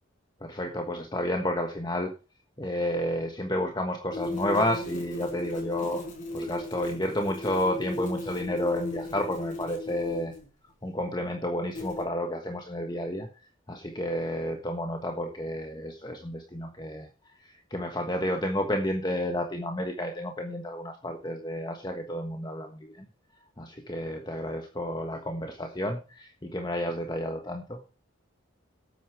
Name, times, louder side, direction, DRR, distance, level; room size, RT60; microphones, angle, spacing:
voice 1, 0.4-2.1 2.6-6.0 6.3-10.3 10.8-13.3 13.7-17.1 17.4-23.1 23.6-27.9, left 1 dB, 20° left, 4 dB, 1.4 m, -31 dB
sound 1, 4.1-10.5 11.7-12.1, left 1 dB, 40° left, 5.3 m, -36 dB
13.0 x 9.2 x 4.9 m, 0.33 s
head